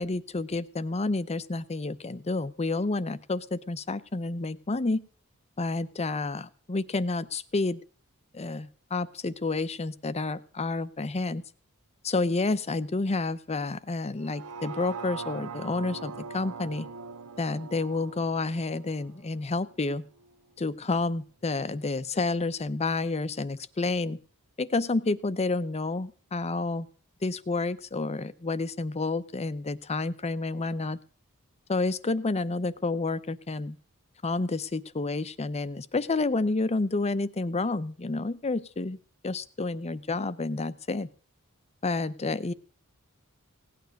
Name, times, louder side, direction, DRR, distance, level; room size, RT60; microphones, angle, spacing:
voice 1, 0.0-5.0 5.6-7.8 8.3-11.4 12.0-16.9 17.4-20.0 20.6-24.2 24.6-26.9 27.2-31.0 31.7-33.8 34.2-39.0 39.2-41.1 41.8-42.5, left 3 dB, 30° left, 15 dB, 0.6 m, -29 dB
sound 1, 14.2-20.3 20.8-20.9, right 4 dB, 80° right, 0.6 m, -42 dB
17.0 x 9.3 x 6.4 m, 0.41 s
head